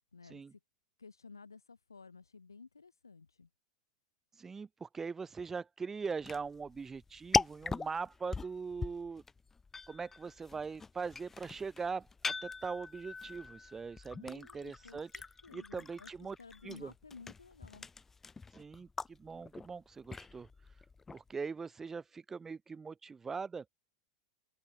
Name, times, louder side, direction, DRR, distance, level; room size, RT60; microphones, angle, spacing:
voice 1, 0.1-0.6 1.0-3.5 14.1-15.0 15.4-17.9, left 4 dB, 80° left, 1.5 m, -54 dB
voice 2, 4.4-9.2 9.9-15.1 15.5-16.4 16.6-16.9 18.5-20.5 21.1-23.6, right 5 dB, 15° right, 1.6 m, -41 dB
sound 1, 6.2-21.3, left 4 dB, 15° left, 1.2 m, -41 dB
open air
figure-of-eight pair, 85°, 2 cm